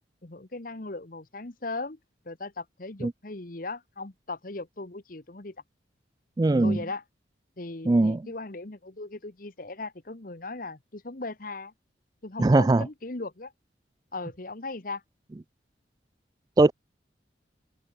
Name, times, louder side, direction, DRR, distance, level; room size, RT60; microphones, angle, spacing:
voice 1, 0.2-2.0 2.2-5.6 6.5-7.0 7.6-11.7 12.2-13.5 14.1-15.0, left 3 dB, 50° left, 1.3 m, -38 dB
voice 2, 6.4-6.8 7.9-8.2 12.4-12.8 16.6-16.7, right 2 dB, 20° right, 0.3 m, -20 dB
open air
head